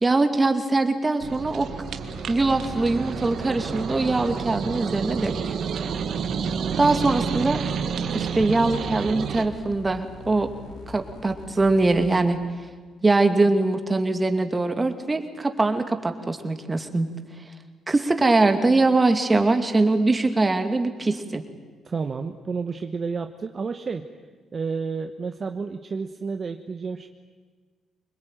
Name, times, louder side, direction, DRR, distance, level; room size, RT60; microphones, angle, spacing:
voice 1, 0.0-1.7 2.3-5.3 6.8-7.6 8.1-10.5 10.9-12.4 13.0-17.1 17.9-21.4, right 2 dB, 20° right, 6 dB, 2.5 m, -22 dB
sound 1, 1.2-9.5, right 7 dB, 65° right, 1.7 m, -30 dB
sound 2, 1.8-12.2, left 3 dB, 85° left, 5.1 m, -43 dB
voice 2, 21.8-24.0 24.5-27.1, right 5 dB, 40° right, 7 dB, 1.1 m, -30 dB
25.0 x 21.0 x 9.1 m, 1.5 s
cardioid pair, 90°, 0 cm